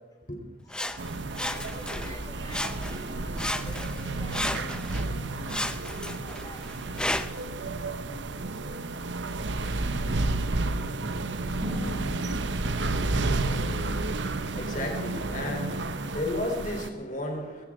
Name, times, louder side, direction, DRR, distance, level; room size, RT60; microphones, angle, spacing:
voice 1, 0.6-6.7, left 1 dB, 20° left, -2 dB, 5.7 m, -47 dB
Sawing, 0.7-2.2 2.5-3.1 3.4-5.1 5.5-7.5 8.1-8.2, left 1 dB, 5° left, 0.6 m, -33 dB
sound 1, 1.0-16.9, right 2 dB, 75° right, 0.9 m, -31 dB
sound 2, 11.6-14.9, equal, 20° right, 4.6 m, -40 dB
voice 2, 13.5-17.6, left 1 dB, 45° left, 2 dB, 3.3 m, -34 dB
20.5 x 18.0 x 3.7 m, 1.3 s
head